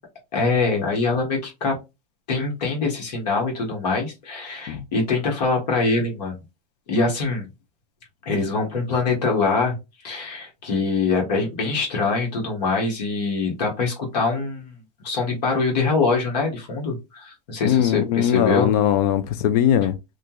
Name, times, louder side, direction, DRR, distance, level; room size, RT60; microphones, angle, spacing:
voice 1, 0.3-1.8 2.3-6.4 6.9-7.5 8.2-9.8 10.0-18.7 19.8-19.9, left 3 dB, 85° left, 1.3 m, -24 dB
voice 2, 17.6-20.0, left 10 dB, 70° left, 0.5 m, -20 dB
2.5 x 2.3 x 2.9 m
supercardioid pair, 120°, 21 cm